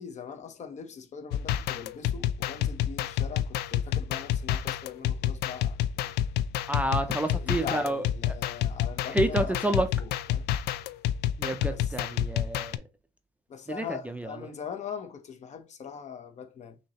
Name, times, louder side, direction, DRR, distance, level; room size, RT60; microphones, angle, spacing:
voice 1, 0.0-6.1 6.8-10.5 11.7-11.9 13.5-16.8, left 7 dB, 45° left, 0.8 m, -41 dB
sound 1, 1.3-12.8, left 11 dB, 75° left, 0.4 m, -29 dB
voice 2, 6.7-8.0 9.1-9.9 11.4-12.7 13.7-13.8 14.2-14.3, right 2 dB, 10° right, 0.4 m, -28 dB
6.0 x 2.8 x 2.9 m
cardioid pair, 110°, 17 cm